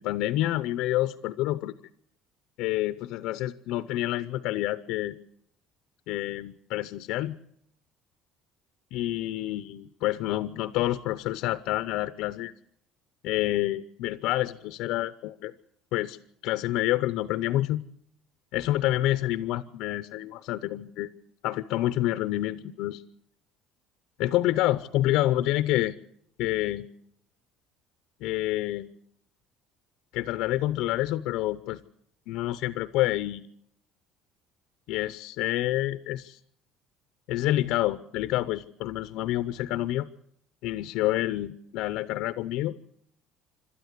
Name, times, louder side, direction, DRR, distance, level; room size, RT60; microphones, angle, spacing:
voice 1, 0.0-1.7 2.6-5.2 6.1-7.4 8.9-12.5 13.2-15.5 15.9-16.2 16.4-17.8 18.5-21.1 21.4-23.0 24.2-26.0 26.4-26.9 28.2-28.9 30.1-31.8 32.3-33.4 34.9-36.4 37.3-40.1 40.6-42.7, left 15 dB, 75° left, 13 dB, 0.7 m, -28 dB
27.0 x 13.0 x 8.3 m, 0.72 s
cardioid pair, 120°, 0 cm